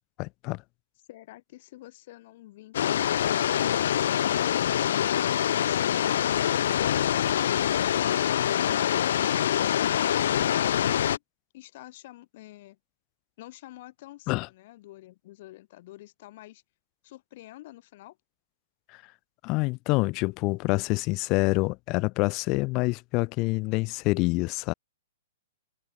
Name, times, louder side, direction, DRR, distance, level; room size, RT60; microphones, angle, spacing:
voice 1, 0.2-0.6 14.3-14.5 19.4-24.7, left 25 dB, 30° left, 1.4 m, -26 dB
voice 2, 1.1-3.9 11.5-12.8 13.4-16.6 17.0-18.2, left 17 dB, 45° left, 5.8 m, -48 dB
sound 1, 2.7-11.2, left 10 dB, 65° left, 0.5 m, -25 dB
open air
hypercardioid pair, 155°, 0 cm